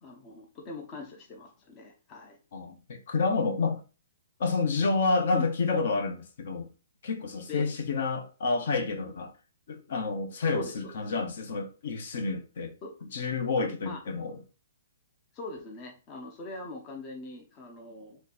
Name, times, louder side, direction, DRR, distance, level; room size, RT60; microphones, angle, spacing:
voice 1, 0.0-2.4 5.3-5.5 7.5-7.7 10.5-10.9 12.8-12.9 13.8-14.0 15.3-18.2, left 2 dB, 20° left, 0.6 m, -41 dB
voice 2, 2.5-3.8 4.4-6.7 7.0-9.3 9.7-12.7 13.0-14.4, left 4 dB, 50° left, 0.9 m, -29 dB
3.3 x 3.1 x 4.1 m
hypercardioid pair, 165°, 0 cm